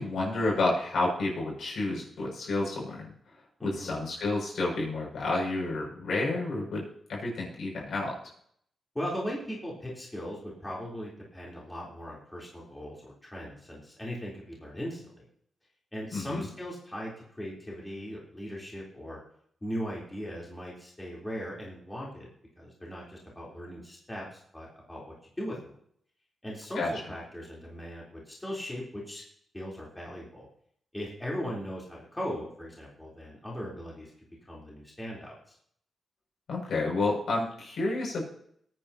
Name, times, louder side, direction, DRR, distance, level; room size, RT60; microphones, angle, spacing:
voice 1, 0.0-3.1 3.6-6.8 7.1-8.2 16.1-16.5 26.7-26.9 36.5-38.2, left 2 dB, 65° left, -3 dB, 6.4 m, -30 dB
voice 2, 3.6-4.0 8.9-15.2 15.9-19.2 19.6-22.3 22.6-25.7 26.4-29.2 29.5-30.5 30.9-34.1 34.5-35.3, equal, 10° left, -5 dB, 3.6 m, -38 dB
22.0 x 9.4 x 2.9 m, 0.66 s
cardioid pair, 105°, 0 cm